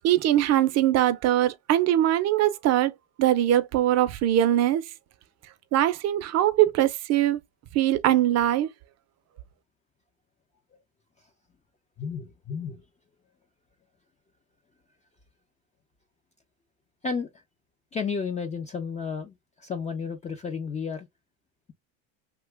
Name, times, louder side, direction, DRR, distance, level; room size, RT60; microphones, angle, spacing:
voice 1, 0.0-2.9 3.2-4.9 5.7-7.4 7.7-8.7, right 12 dB, 45° right, 0.6 m, -22 dB
voice 2, 12.0-12.8 17.0-17.3 17.9-21.1, left 5 dB, 20° left, 0.5 m, -32 dB
2.8 x 2.2 x 3.3 m
cardioid pair, 125°, 38 cm